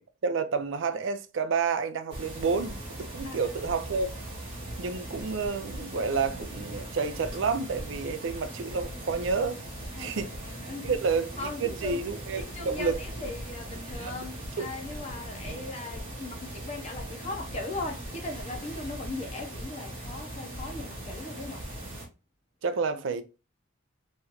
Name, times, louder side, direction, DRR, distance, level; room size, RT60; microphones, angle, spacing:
voice 1, 0.2-4.1 4.8-9.6 10.0-10.3 10.8-13.0 14.0-14.1 14.6-14.7 15.5-15.6 22.6-23.2, right 5 dB, 65° right, 0.4 m, -30 dB
sound 1, 2.1-22.0, right 1 dB, 25° right, 1.1 m, -39 dB
voice 2, 3.2-3.6 10.0-11.0 11.4-12.0 12.4-21.7, left 2 dB, 30° left, 0.6 m, -39 dB
3.1 x 2.4 x 2.9 m
head